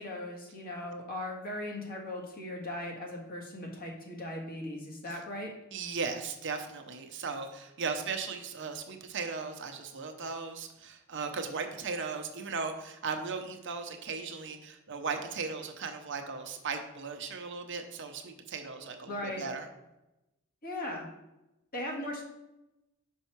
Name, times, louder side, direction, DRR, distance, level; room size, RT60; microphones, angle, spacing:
voice 1, 0.0-5.5 19.1-19.5 20.6-21.1 21.7-22.2, left 1 dB, 45° left, -1 dB, 1.7 m, -38 dB
voice 2, 5.7-19.7, right 4 dB, 60° right, 5 dB, 0.8 m, -37 dB
6.3 x 5.5 x 4.6 m, 0.94 s
head